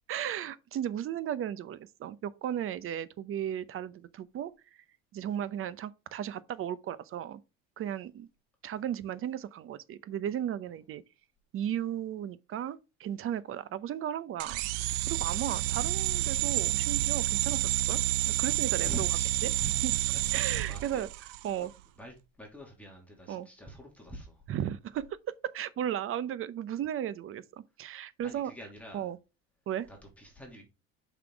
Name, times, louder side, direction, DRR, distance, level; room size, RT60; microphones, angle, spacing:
voice 1, 0.1-4.5 5.1-7.4 7.8-8.3 8.6-11.0 11.5-14.6 15.1-18.0 18.3-19.1 19.4-20.0 20.3-21.1 21.4-21.7 23.3-23.5 24.5-28.5 28.9-29.2 29.7-29.9, right 10 dB, 50° right, 0.8 m, -35 dB
sound 1, 14.4-21.5, right 15 dB, 90° right, 0.6 m, -29 dB
voice 2, 18.8-19.8 20.1-21.0 21.5-21.7 22.0-24.4 28.2-29.1 29.9-30.6, right 1 dB, 5° left, 2.7 m, -46 dB
6.0 x 5.9 x 4.6 m
cardioid pair, 110°, 29 cm